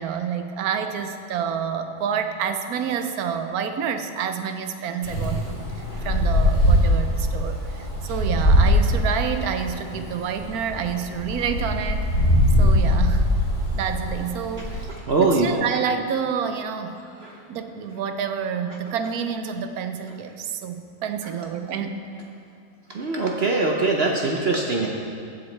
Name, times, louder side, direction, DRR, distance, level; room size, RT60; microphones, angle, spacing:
voice 1, 0.0-12.1 12.6-13.4 13.7-14.9 15.2-17.0 17.5-22.0, right 7 dB, 70° right, 8 dB, 1.1 m, -28 dB
Wind, 5.0-14.9, left 1 dB, 45° left, 3.3 m, -21 dB
voice 2, 15.1-15.5 17.2-17.3 22.9-24.9, right 3 dB, 55° right, 0 dB, 0.7 m, -22 dB
15.5 x 7.9 x 3.3 m, 2.4 s
omnidirectional pair, 1.8 m